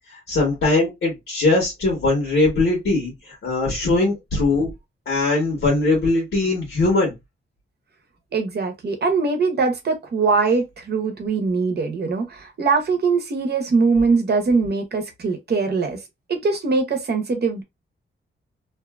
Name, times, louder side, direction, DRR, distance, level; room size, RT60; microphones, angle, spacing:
voice 1, 0.1-4.7 5.1-7.1, left 2 dB, 75° left, 1.2 m, -21 dB
voice 2, 8.3-16.0 16.3-17.6, right 4 dB, 50° right, 0.8 m, -22 dB
2.6 x 2.5 x 2.2 m
wide cardioid pair, 140°, 21 cm